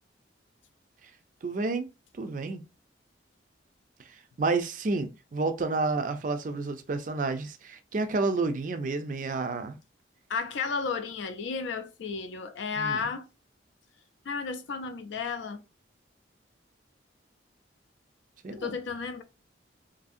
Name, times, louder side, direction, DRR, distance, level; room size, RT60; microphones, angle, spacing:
voice 1, 1.4-1.9 2.1-2.6 4.1-9.8 12.8-13.1 18.4-18.8, right 3 dB, 40° right, 0.4 m, -30 dB
voice 2, 10.3-13.3 14.3-15.6 18.5-19.2, left 5 dB, 75° left, 0.4 m, -33 dB
2.7 x 2.6 x 2.5 m
head